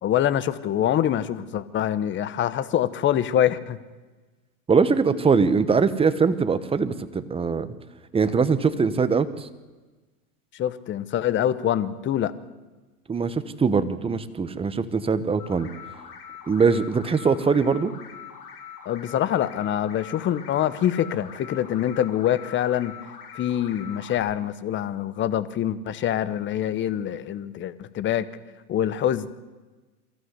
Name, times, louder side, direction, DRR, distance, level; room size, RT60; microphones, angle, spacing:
voice 1, 0.0-3.8 10.5-12.3 18.8-22.9 23.3-28.3 28.7-29.3, left 11 dB, 25° left, 15 dB, 1.0 m, -25 dB
voice 2, 4.7-7.7 8.1-9.5 13.1-15.7 16.5-17.9, right 5 dB, 10° right, 12 dB, 1.0 m, -22 dB
sound 1, 15.4-24.2, left 8 dB, 90° left, 6.5 m, -43 dB
23.5 x 15.0 x 8.2 m, 1.2 s
hypercardioid pair, 120°, 45 cm